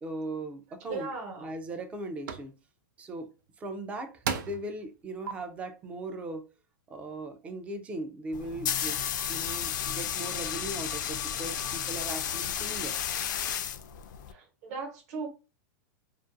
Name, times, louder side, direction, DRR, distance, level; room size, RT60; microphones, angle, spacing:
voice 1, 0.0-1.1 1.4-2.5 3.0-3.3 3.6-6.4 6.9-13.0, right 2 dB, 15° right, 0.3 m, -38 dB
voice 2, 0.9-1.5 14.3-15.3, right 4 dB, 50° right, 1.0 m, -37 dB
sound 1, 0.9-1.0 1.6-1.9 2.3-2.5 3.7-3.8 4.2-4.7 5.3-5.4, right 7 dB, 80° right, 0.4 m, -33 dB
sound 2, 8.3-14.3, left 9 dB, 80° left, 0.4 m, -32 dB
2.4 x 2.2 x 2.5 m
supercardioid pair, 155°, 10 cm